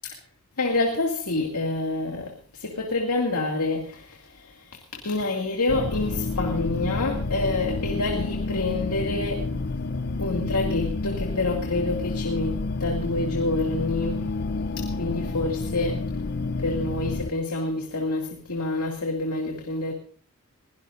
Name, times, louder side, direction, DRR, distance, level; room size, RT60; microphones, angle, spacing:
voice 1, 0.6-9.5 10.2-14.3 14.8-16.0 16.6-19.9, left 2 dB, 90° left, 2.4 m, -27 dB
sound 1, 5.7-17.3, left 3 dB, 45° left, 0.6 m, -29 dB
22.5 x 17.0 x 2.6 m
head